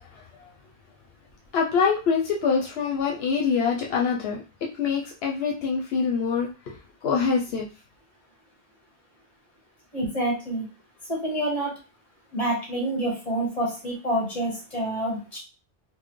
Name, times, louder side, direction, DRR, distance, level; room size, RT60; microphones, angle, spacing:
voice 1, 1.5-4.4 4.8-6.8 7.0-7.7, left 6 dB, 85° left, -1 dB, 0.9 m, -24 dB
voice 2, 9.9-10.7 11.1-11.7 12.3-15.4, right 1 dB, 35° left, -3 dB, 1.6 m, -27 dB
4.4 x 2.0 x 3.1 m, 0.32 s
omnidirectional pair, 1.0 m